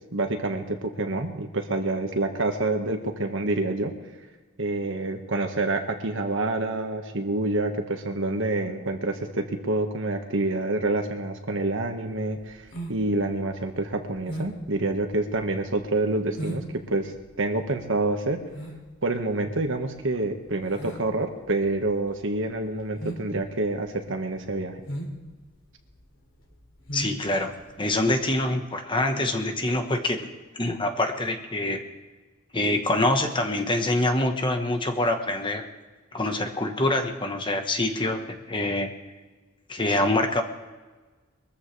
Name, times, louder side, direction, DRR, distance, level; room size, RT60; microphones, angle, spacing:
voice 1, 0.1-3.9 4.6-12.6 12.9-17.1 17.4-18.4 19.0-24.8, right 2 dB, 65° right, 5 dB, 1.5 m, -27 dB
sound 1, 12.1-28.5, right 1 dB, 60° left, 2.8 m, -39 dB
voice 2, 26.9-30.3 30.6-31.8 32.5-35.6 36.1-38.9 39.7-40.4, left 1 dB, 25° left, 5 dB, 1.2 m, -25 dB
22.5 x 14.5 x 3.3 m, 1.3 s
head